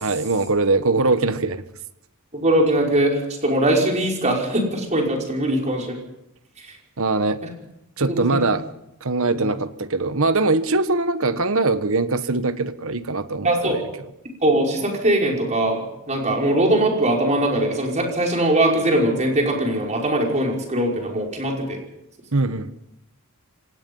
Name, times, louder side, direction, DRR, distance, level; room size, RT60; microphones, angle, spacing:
voice 1, 0.0-1.6 7.0-7.4 8.0-8.6 9.0-13.8 22.3-22.7, right 3 dB, 65° right, 11 dB, 1.3 m, -22 dB
voice 2, 2.3-6.0 8.0-8.5 9.4-9.5 13.4-13.8 14.4-21.8, right 1 dB, 35° right, 0 dB, 5.5 m, -21 dB
25.5 x 19.0 x 5.6 m, 0.86 s
head